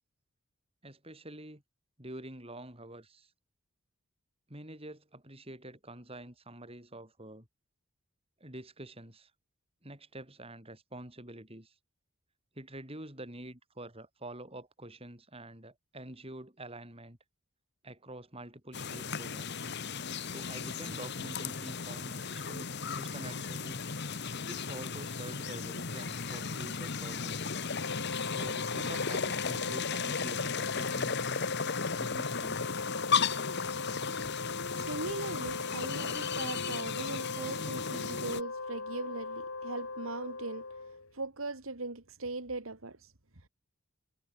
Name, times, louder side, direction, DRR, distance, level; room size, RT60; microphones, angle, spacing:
voice 1, 0.8-1.6 2.0-3.3 4.5-7.5 8.4-9.3 9.8-11.7 12.5-17.2 17.8-19.6 20.2-23.8 24.4-27.5 28.3-31.5 31.9-32.8, right 1 dB, 25° right, 7.6 m, -47 dB
sound 1, 18.7-38.4, left 5 dB, 50° left, 1.5 m, -35 dB
Wind instrument woodwind instrument, 27.7-41.1, left 3 dB, 80° left, 3.2 m, -40 dB
voice 2, 34.7-40.7 41.1-43.1, right 2 dB, 75° right, 2.6 m, -39 dB
head